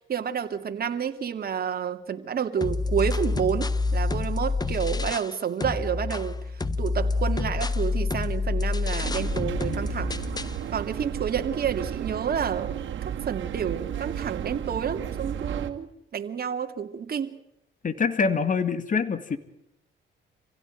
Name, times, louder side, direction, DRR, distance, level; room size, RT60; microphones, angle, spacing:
voice 1, 0.0-6.3 6.8-10.1 10.7-12.8 13.2-17.4, right 7 dB, 50° right, 6 dB, 2.5 m, -29 dB
sound 1, 2.6-5.3 5.6-10.6, left 3 dB, 20° left, 1.1 m, -28 dB
sound 2, 9.0-15.7, right 10 dB, 70° right, 2.3 m, -33 dB
voice 2, 17.8-19.4, left 5 dB, 40° left, 11 dB, 2.1 m, -25 dB
27.5 x 16.5 x 9.2 m, 0.79 s
cardioid pair, 90°, 20 cm